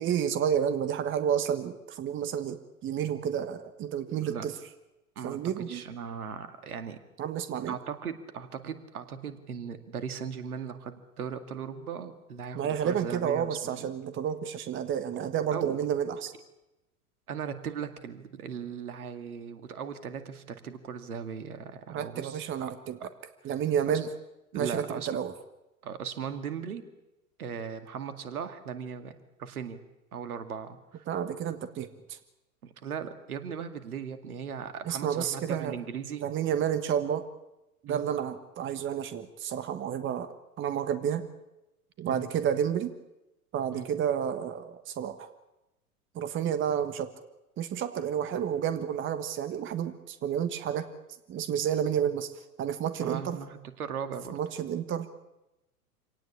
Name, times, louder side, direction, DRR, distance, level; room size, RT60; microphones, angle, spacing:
voice 1, 0.0-4.5 5.2-5.8 7.2-7.8 12.5-16.3 21.9-23.0 23.4-24.1 24.5-25.3 31.1-32.2 34.8-35.8 36.2-37.3 37.8-41.3 42.0-42.9 43.5-45.3 46.1-47.1 47.6-50.9 51.3-53.4 54.3-55.1, right 8 dB, 25° right, 11 dB, 1.4 m, -30 dB
voice 2, 5.7-7.0 7.7-13.9 15.5-15.8 17.3-22.7 23.0-23.1 23.9-24.0 24.5-25.2 25.8-26.8 27.4-29.8 30.1-31.0 32.6-36.3 37.9-38.1 42.1-42.3 43.7-43.9 53.0-54.3, right 7 dB, 70° right, 9 dB, 2.3 m, -38 dB
26.5 x 18.0 x 8.6 m, 0.95 s
figure-of-eight pair, 95°, 46 cm